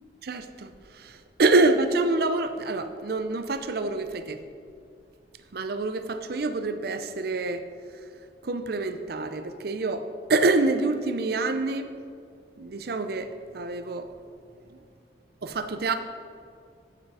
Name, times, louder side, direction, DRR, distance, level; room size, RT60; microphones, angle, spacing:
voice 1, 0.2-4.4 5.5-7.6 8.4-11.9 12.6-14.1 14.7-14.8 15.4-15.9, right 3 dB, 60° right, 9 dB, 0.6 m, -26 dB
7.9 x 7.2 x 4.9 m, 2.3 s
head